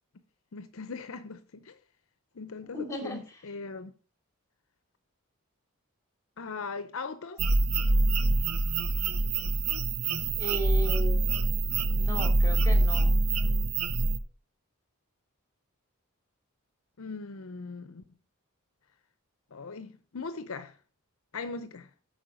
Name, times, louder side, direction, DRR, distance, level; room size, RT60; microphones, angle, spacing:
voice 1, 0.5-1.8 2.3-3.9 6.4-7.4 17.0-18.0 19.5-20.8 21.3-21.9, left 4 dB, 65° left, 0.7 m, -39 dB
voice 2, 2.7-3.2 10.4-11.5 11.9-13.2, right 1 dB, 15° left, 2.6 m, -36 dB
sound 1, 7.4-14.2, right 2 dB, 90° right, 0.8 m, -25 dB
8.8 x 5.4 x 6.3 m
head